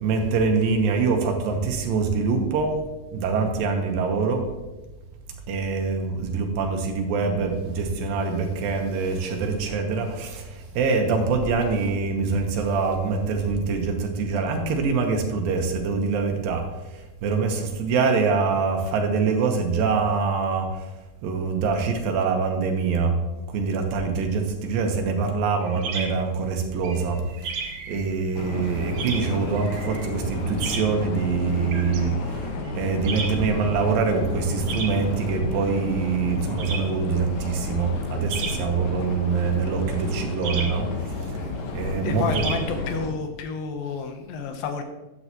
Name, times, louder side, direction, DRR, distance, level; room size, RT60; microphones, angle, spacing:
voice 1, 0.0-2.7 3.1-4.4 5.5-10.4 10.8-16.6 17.2-20.7 21.2-23.1 23.5-27.2 27.9-32.1 32.7-40.8 41.7-42.4, right 4 dB, 85° right, 3 dB, 2.9 m, -24 dB
sound 1, 25.6-43.2, right 5 dB, 65° right, 2.6 m, -36 dB
sound 2, 28.3-43.1, left 3 dB, 65° left, 2.5 m, -31 dB
voice 2, 42.0-44.8, left 4 dB, 80° left, 6 dB, 2.7 m, -30 dB
12.5 x 8.5 x 3.0 m, 1.1 s
omnidirectional pair, 4.0 m